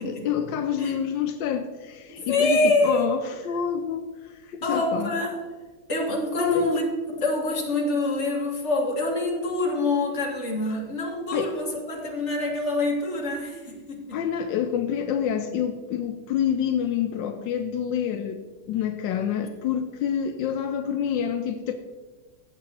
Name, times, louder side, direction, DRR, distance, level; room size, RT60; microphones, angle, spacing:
voice 1, 0.0-5.1 6.4-6.7 10.7-10.8 11.3-11.5 14.1-18.4 18.7-21.7, left 8 dB, 85° left, 7 dB, 1.3 m, -27 dB
voice 2, 2.1-3.1 4.6-5.4 5.9-14.2, left 2 dB, 40° left, -1 dB, 2.0 m, -26 dB
15.0 x 7.6 x 2.9 m, 1.3 s
omnidirectional pair, 2.0 m